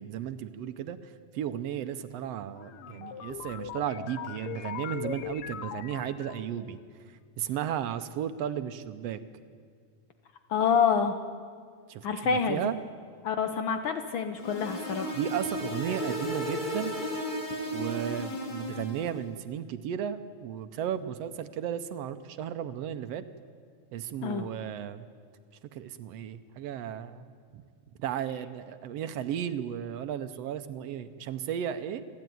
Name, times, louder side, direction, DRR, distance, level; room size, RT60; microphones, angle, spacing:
voice 1, 0.0-6.8 7.4-9.2 11.9-12.8 15.1-16.9 17.7-23.2 23.9-25.0 25.7-27.6 28.0-32.0, right 9 dB, 70° right, 11 dB, 1.7 m, -34 dB
sound 1, 2.5-6.7, left 10 dB, 70° left, 1.4 m, -40 dB
voice 2, 10.5-11.1 12.0-12.6 13.2-15.2 24.2-24.4, left 6 dB, 90° left, 7 dB, 1.0 m, -27 dB
sound 2, 14.4-19.2, equal, 15° left, 2.8 m, -34 dB
29.0 x 12.0 x 9.3 m, 2.1 s
omnidirectional pair, 3.4 m